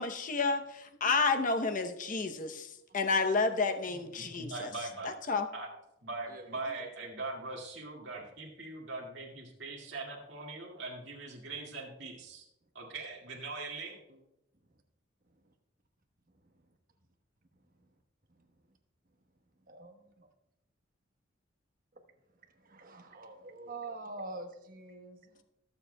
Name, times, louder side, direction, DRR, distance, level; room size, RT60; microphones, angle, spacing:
voice 1, 0.0-2.7 2.9-4.7 5.0-5.5, left 4 dB, 40° left, 7 dB, 0.7 m, -30 dB
voice 2, 3.9-5.2 5.5-5.7 6.0-12.4 12.7-14.2, right 3 dB, 65° right, -3 dB, 2.1 m, -41 dB
voice 3, 6.3-6.9 19.7-20.3 22.5-25.4, right 2 dB, 45° right, 5 dB, 1.1 m, -46 dB
21.5 x 7.2 x 2.2 m, 0.86 s
head